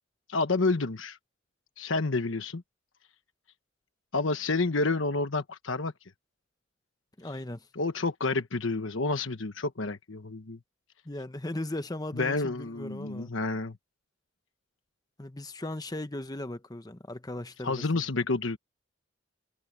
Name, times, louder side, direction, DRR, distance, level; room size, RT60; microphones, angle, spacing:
voice 1, 0.3-1.2 1.8-2.6 4.1-5.9 7.8-10.6 12.1-13.8 17.6-18.6, left 3 dB, 85° left, 1.2 m, -29 dB
voice 2, 7.2-7.7 11.0-13.4 15.2-18.2, left 1 dB, 20° left, 1.0 m, -38 dB
head